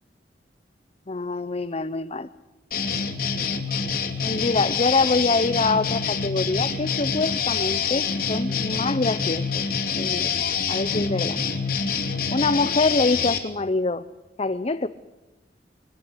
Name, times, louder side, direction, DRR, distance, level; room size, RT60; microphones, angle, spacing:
voice 1, 1.1-2.3 4.2-9.6 10.0-10.4 10.7-11.4 12.3-14.0 14.4-14.9, left 3 dB, 35° left, 11 dB, 0.8 m, -25 dB
sound 1, 2.7-13.4, left 6 dB, 55° left, 3.0 m, -26 dB
23.5 x 21.0 x 8.1 m, 1.0 s
head